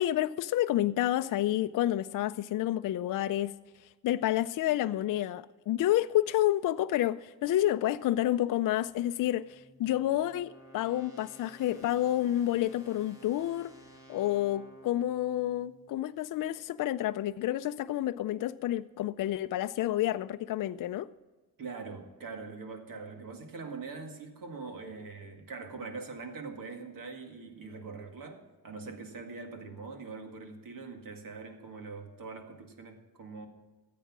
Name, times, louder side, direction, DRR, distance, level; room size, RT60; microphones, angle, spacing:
voice 1, 0.0-3.5 4.0-13.7 14.1-21.1, left 13 dB, 60° left, 0.5 m, -29 dB
sound 1, 8.9-16.1, right 1 dB, 10° right, 3.4 m, -55 dB
voice 2, 21.6-33.5, right 4 dB, 65° right, 2.1 m, -43 dB
14.0 x 8.5 x 5.9 m
cardioid pair, 110°, 36 cm